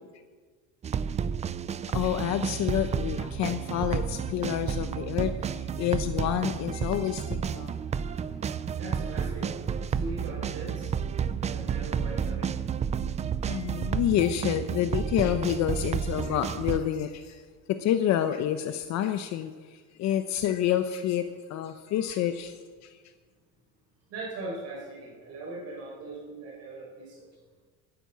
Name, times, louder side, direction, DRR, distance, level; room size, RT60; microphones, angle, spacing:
sound 1, 0.8-16.8, right 7 dB, 20° right, 0.4 m, -31 dB
voice 1, 1.9-7.7 13.5-17.4 17.8-23.0, left 11 dB, 60° left, 9 dB, 0.9 m, -28 dB
voice 2, 5.7-6.1 7.5-13.4 24.1-27.3, right 2 dB, 55° right, -4 dB, 5.1 m, -41 dB
13.5 x 9.8 x 8.4 m, 1.5 s
cardioid pair, 145°, 31 cm